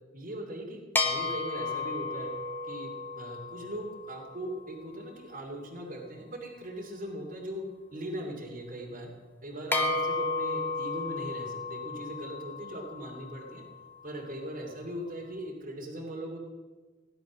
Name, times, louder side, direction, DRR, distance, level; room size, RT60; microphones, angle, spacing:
voice 1, 0.1-2.3 2.6-7.6 7.9-9.1 9.4-13.6 14.0-16.4, right 1 dB, 45° right, -2 dB, 2.6 m, -40 dB
sound 1, 1.0-4.6 9.7-14.1, left 3 dB, 10° left, 1.3 m, -33 dB
17.0 x 11.0 x 6.2 m, 1.3 s
head